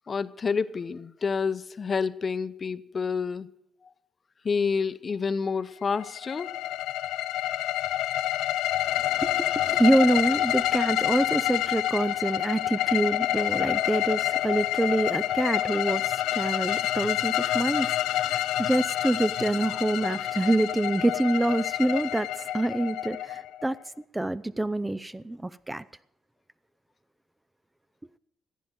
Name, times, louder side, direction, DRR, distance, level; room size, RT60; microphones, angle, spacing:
voice 1, 0.1-3.5 4.4-6.5, left 5 dB, 40° left, 0.7 m, -28 dB
sound 1, 5.9-23.7, left 13 dB, 90° left, 0.5 m, -28 dB
voice 2, 8.9-23.8 24.1-25.8, right 1 dB, 10° right, 0.4 m, -26 dB
15.0 x 9.4 x 7.9 m
cardioid pair, 90°, 0 cm